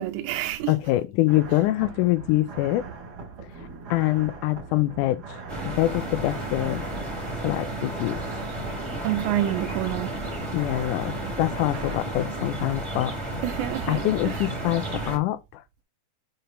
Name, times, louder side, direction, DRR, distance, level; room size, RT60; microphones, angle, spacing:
voice 1, 0.0-0.7 9.0-10.2 13.4-14.0, right 13 dB, 80° right, 1.9 m, -27 dB
voice 2, 0.7-2.9 3.9-6.9 7.4-8.2 10.5-13.1 13.9-15.6, left 16 dB, 80° left, 2.0 m, -25 dB
sound 1, 1.3-12.0, right 4 dB, 50° right, 1.2 m, -41 dB
sound 2, 5.5-15.2, right 2 dB, 20° right, 0.7 m, -32 dB
6.7 x 3.0 x 5.1 m
omnidirectional pair, 3.8 m